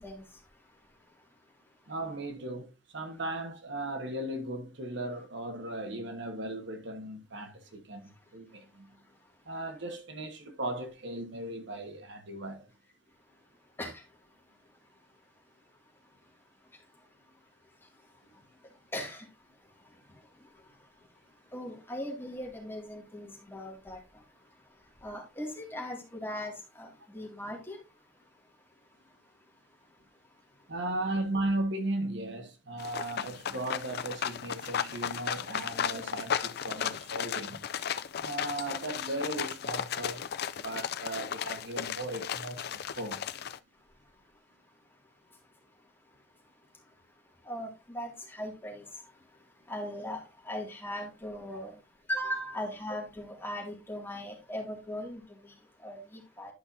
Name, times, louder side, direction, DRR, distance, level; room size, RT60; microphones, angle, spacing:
voice 1, 0.0-1.9 8.0-9.4 13.1-30.7 38.0-38.3 43.7-56.5, equal, 10° left, 2.2 m, -42 dB
voice 2, 1.9-8.0 8.3-8.9 9.4-12.7 30.7-37.6 38.2-40.2 40.6-43.2, right 1 dB, 70° right, 1.4 m, -36 dB
sound 1, 32.8-43.6, left 8 dB, 55° left, 0.4 m, -35 dB
11.0 x 5.7 x 2.7 m
head